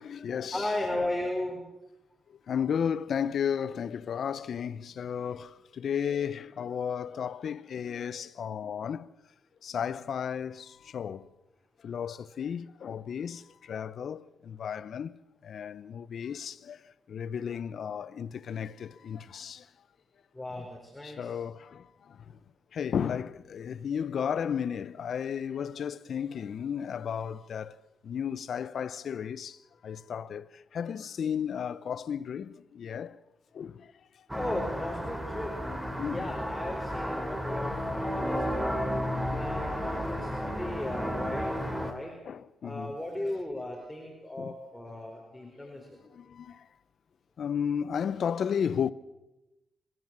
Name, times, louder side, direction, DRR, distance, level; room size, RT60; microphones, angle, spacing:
voice 1, 0.0-0.7 2.5-9.1 9.6-11.3 11.8-15.1 15.4-19.7 21.0-22.4 22.7-27.8 28.0-33.2 33.5-33.9 36.0-36.4 38.2-38.4 39.1-39.5 40.1-40.3 41.8-41.9 42.2-43.0 44.4-44.5 45.4-45.8 46.1-46.7 47.4-48.9, left 8 dB, 65° left, 0.9 m, -34 dB
voice 2, 0.5-1.6 20.3-21.3 34.3-35.5 35.9-38.9 39.3-41.5 41.8-42.1 42.6-46.0, left 1 dB, 10° left, 4.6 m, -36 dB
sound 1, 34.3-41.9, equal, 10° right, 3.2 m, -32 dB
27.5 x 14.5 x 7.6 m
cardioid pair, 65°, 0 cm